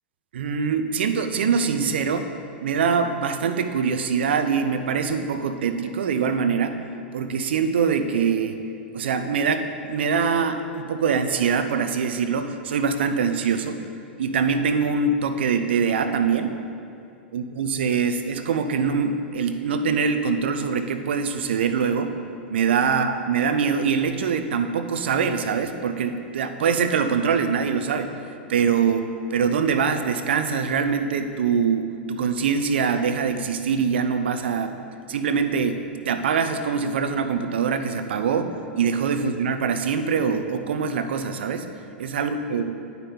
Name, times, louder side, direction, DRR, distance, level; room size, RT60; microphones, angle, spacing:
voice 1, 0.3-2.3 2.6-6.8 7.1-8.6 8.9-13.8 14.2-16.6 17.3-22.1 22.5-28.1 28.5-29.1 29.3-34.8 35.1-35.8 36.1-41.7 42.0-42.7, right 6 dB, 70° right, 8 dB, 0.6 m, -23 dB
9.7 x 5.3 x 4.4 m, 2.5 s
hypercardioid pair, 100°, 6 cm